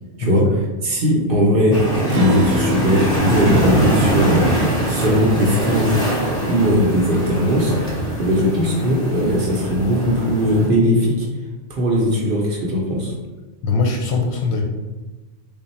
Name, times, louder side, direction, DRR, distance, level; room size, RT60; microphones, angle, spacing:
voice 1, 0.2-0.5 13.6-14.7, left 4 dB, 65° left, 1 dB, 0.8 m, -20 dB
voice 2, 0.8-1.8 2.1-4.5 4.8-6.0 6.4-7.7 8.2-11.3 11.7-13.1, equal, 55° right, -2 dB, 0.7 m, -18 dB
sound 1, 1.7-10.7, right 1 dB, 5° left, 0.8 m, -22 dB
Acoustic guitar, 2.1-6.8, left 1 dB, 90° right, 1.0 m, -28 dB
3.5 x 2.2 x 4.0 m, 1.2 s
omnidirectional pair, 1.3 m